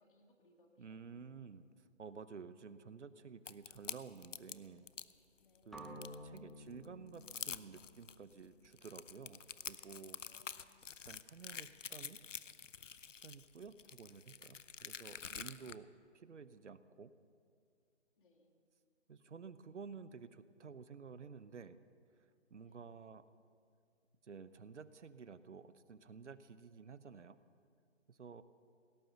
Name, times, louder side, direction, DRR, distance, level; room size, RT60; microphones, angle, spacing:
voice 1, 0.0-1.3 5.4-5.9 10.2-10.7 18.2-18.5 22.6-22.8, left 1 dB, 45° left, 2 dB, 2.3 m, -70 dB
voice 2, 0.8-4.9 5.7-10.2 11.1-12.2 13.1-15.9 16.1-17.1 19.1-21.8 22.5-23.2 24.2-27.4 28.1-28.4, right 5 dB, 70° right, 14 dB, 0.9 m, -52 dB
sound 1, 3.5-5.1 5.6-6.4 6.8-6.9 7.1-8.2 8.6-15.8, left 7 dB, 80° left, 0.7 m, -47 dB
sound 2, 5.7-9.7, equal, ahead, 0.3 m, -54 dB
17.5 x 11.5 x 6.7 m, 2.2 s
figure-of-eight pair, 145°, 37 cm